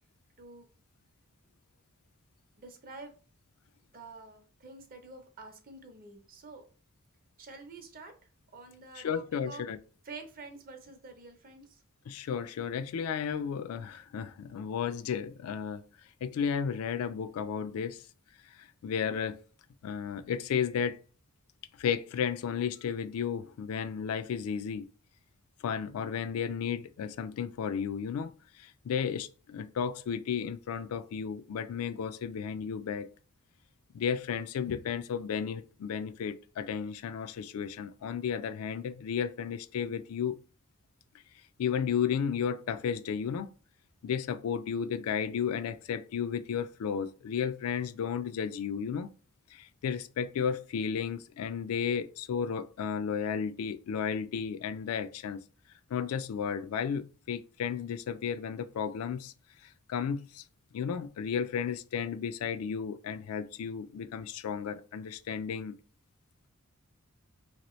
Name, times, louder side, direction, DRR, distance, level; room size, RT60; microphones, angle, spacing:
voice 1, 2.6-3.1 3.9-6.6 7.4-8.1 8.5-9.6 10.0-11.8, right 3 dB, 40° right, 0.6 m, -48 dB
voice 2, 9.0-9.8 12.1-15.8 16.2-18.0 18.6-19.4 19.8-21.0 21.8-24.9 25.6-33.1 33.9-40.4 41.6-43.5 44.0-49.1 49.5-55.4 55.9-59.3 59.6-60.4 60.7-65.8, left 7 dB, 70° left, 0.3 m, -33 dB
2.9 x 2.9 x 3.0 m
head